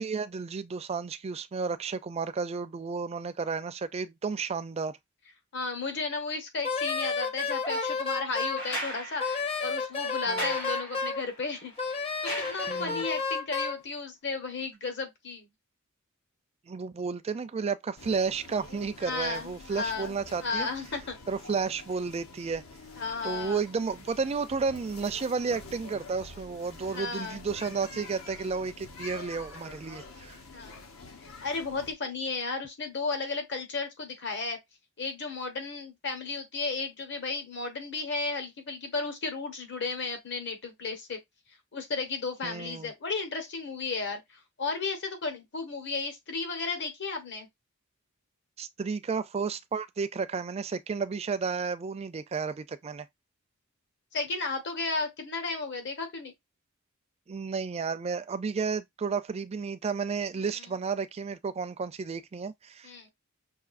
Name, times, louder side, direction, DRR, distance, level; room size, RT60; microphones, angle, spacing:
voice 1, 0.0-5.0 10.3-10.5 12.7-13.0 16.7-20.7 21.3-22.6 23.2-30.4 42.4-42.9 48.6-53.1 57.3-63.1, right 5 dB, 30° right, 0.4 m, -32 dB
voice 2, 5.5-11.7 12.5-15.5 19.0-21.2 23.0-23.6 26.9-27.4 30.5-30.8 31.2-34.6 35.0-41.2 41.7-47.5 54.1-56.3 60.4-60.6 62.8-63.1, left 4 dB, 55° left, 1.2 m, -34 dB
Wind instrument woodwind instrument, 6.6-8.6 9.2-11.2 11.8-13.8, left 4 dB, 25° left, 0.7 m, -31 dB
sound 1, 8.6-13.2 14.7-14.8, equal, 90° left, 2.7 m, -39 dB
sound 2, 18.0-31.9, left 3 dB, 70° left, 1.0 m, -47 dB
5.7 x 2.7 x 2.5 m
head